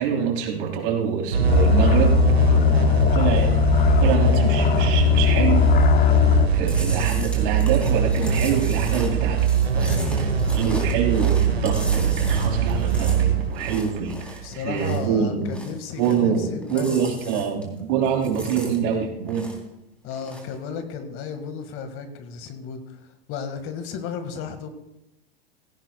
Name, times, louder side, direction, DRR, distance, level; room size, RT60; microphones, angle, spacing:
voice 1, 0.0-3.7 4.0-5.7 6.5-15.5 16.0-19.5, right 7 dB, 55° right, 0 dB, 3.3 m, -25 dB
sound 1, 1.3-14.6, right 7 dB, 90° right, 1.9 m, -22 dB
sound 2, 1.5-6.5, left 13 dB, 30° left, 0.7 m, -19 dB
Chewing mastication, 6.7-15.1 15.4-16.4 16.6-17.8 18.0-19.7 20.1-20.5, equal, 5° left, 3.4 m, -38 dB
voice 2, 9.8-10.6 14.4-17.0 17.3-17.5 20.0-23.0 23.3-24.7, left 6 dB, 45° left, 8 dB, 1.9 m, -34 dB
17.0 x 16.5 x 2.3 m, 0.91 s
hypercardioid pair, 95°, 30 cm